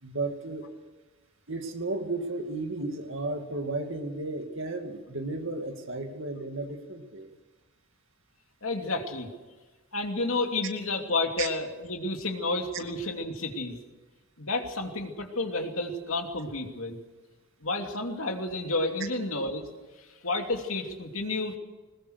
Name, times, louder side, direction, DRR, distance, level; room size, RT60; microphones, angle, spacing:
voice 1, 0.0-0.7 1.5-7.3 11.4-11.5, right 2 dB, 60° right, 4 dB, 2.5 m, -33 dB
voice 2, 8.6-9.3 9.9-13.8 14.4-17.0 17.6-19.7 20.2-21.6, left 2 dB, 70° left, 3 dB, 2.8 m, -31 dB
21.5 x 20.0 x 6.6 m, 1.3 s
head